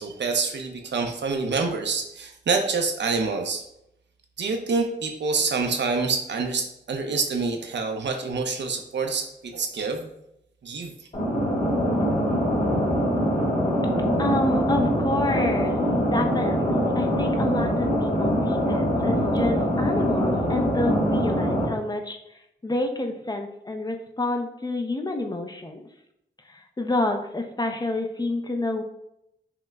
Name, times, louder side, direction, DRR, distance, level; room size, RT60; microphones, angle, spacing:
voice 1, 0.0-3.6 4.4-10.1 10.6-10.9, right 4 dB, 75° right, 4 dB, 0.5 m, -27 dB
sound 1, 11.1-21.7, equal, 40° left, 1.1 m, -23 dB
voice 2, 14.2-15.8 16.1-22.2 22.6-25.9 26.5-28.8, left 2 dB, 20° left, 4 dB, 0.4 m, -28 dB
5.6 x 2.0 x 2.2 m, 0.81 s
wide cardioid pair, 90°, 19 cm